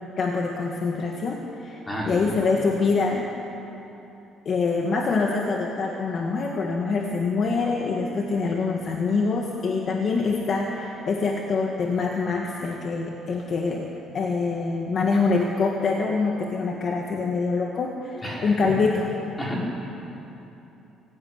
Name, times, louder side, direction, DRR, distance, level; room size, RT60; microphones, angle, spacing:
voice 1, 0.2-1.8 2.1-3.3 4.4-13.9 14.1-19.1, left 4 dB, 35° left, 0 dB, 1.8 m, -25 dB
voice 2, 1.9-2.3 18.2-18.7 19.4-19.8, equal, 10° left, -3 dB, 4.7 m, -31 dB
26.0 x 17.5 x 9.7 m, 3.0 s
cardioid pair, 180°, 0 cm